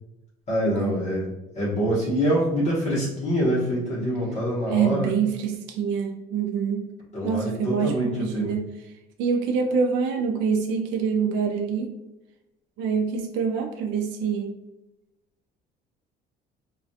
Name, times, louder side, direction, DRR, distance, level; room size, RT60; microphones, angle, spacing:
voice 1, 0.5-5.1 7.1-8.5, equal, 40° left, -7 dB, 0.9 m, -25 dB
voice 2, 4.7-6.9 7.2-8.7 9.2-11.9 12.8-14.5, right 6 dB, 85° right, 3 dB, 0.4 m, -25 dB
2.4 x 2.2 x 2.6 m, 0.95 s
cardioid pair, 140°, 19 cm